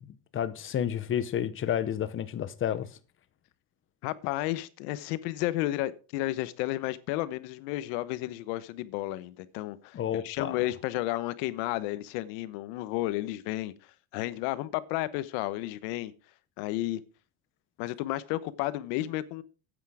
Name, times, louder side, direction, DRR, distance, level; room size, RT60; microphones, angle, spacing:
voice 1, 0.0-3.0 9.9-10.7, left 9 dB, 25° left, 0.8 m, -31 dB
voice 2, 4.0-10.0 10.2-13.7 14.1-16.1 16.6-17.0 17.8-19.4, left 16 dB, 75° left, 1.1 m, -32 dB
9.5 x 8.3 x 4.9 m
cardioid pair, 150°, 49 cm